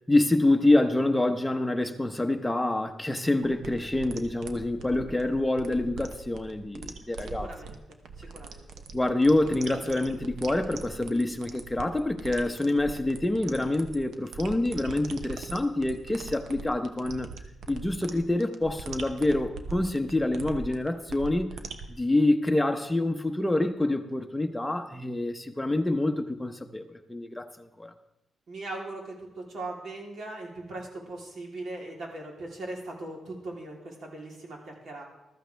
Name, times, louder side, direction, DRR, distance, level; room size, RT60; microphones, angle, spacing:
voice 1, 0.1-7.5 8.9-17.3 17.7-27.9, left 2 dB, 10° left, 6 dB, 1.0 m, -26 dB
sound 1, 3.4-21.9, right 4 dB, 80° right, 1.0 m, -42 dB
voice 2, 7.2-7.8 8.2-8.7 28.5-35.0, right 2 dB, 65° right, -1 dB, 3.4 m, -39 dB
14.5 x 13.5 x 3.4 m, 0.91 s
cardioid pair, 110°, 0 cm